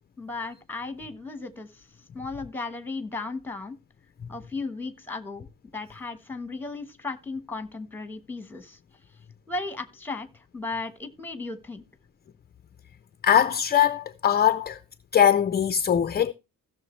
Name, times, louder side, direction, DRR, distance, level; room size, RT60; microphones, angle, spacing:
voice 1, 0.2-1.8 2.1-3.8 4.3-5.5 5.7-8.8 9.5-11.8, left 3 dB, 5° left, 1.2 m, -35 dB
voice 2, 13.2-14.8 15.1-16.3, left 9 dB, 30° left, 0.4 m, -21 dB
16.0 x 6.7 x 3.1 m
wide cardioid pair, 165°, 35 cm